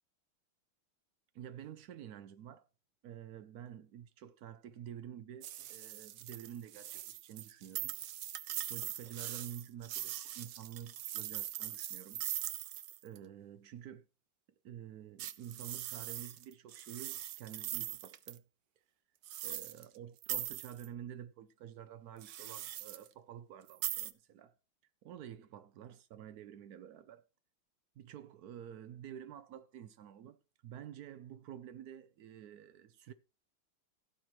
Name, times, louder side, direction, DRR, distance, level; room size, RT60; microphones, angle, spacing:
voice 1, 1.3-2.7 3.0-8.0 8.7-12.2 13.0-14.1 14.6-18.4 19.4-24.6 25.0-27.3 28.0-30.4 30.6-33.1, right 10 dB, 90° right, 0.8 m, -49 dB
sound 1, 5.4-13.2 15.2-18.4 19.2-20.0 20.2-20.9 22.2-23.1 23.7-24.1, right 12 dB, 70° right, 1.1 m, -41 dB
16.5 x 7.9 x 3.1 m
omnidirectional pair, 2.4 m